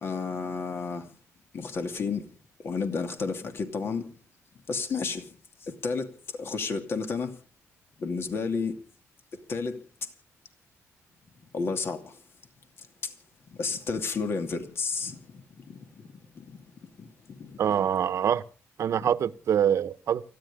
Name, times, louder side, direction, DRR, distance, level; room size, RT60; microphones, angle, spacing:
voice 1, 0.0-1.0 1.5-2.2 2.6-4.0 4.7-5.2 5.8-6.1 6.4-7.3 8.0-8.7 9.5-9.8 11.5-12.0 13.6-15.2 15.7-15.8, left 4 dB, 45° left, 2.7 m, -30 dB
voice 2, 17.6-18.4 18.8-20.2, right 9 dB, 60° right, 1.1 m, -25 dB
29.0 x 10.5 x 3.6 m
cardioid pair, 140°, 6 cm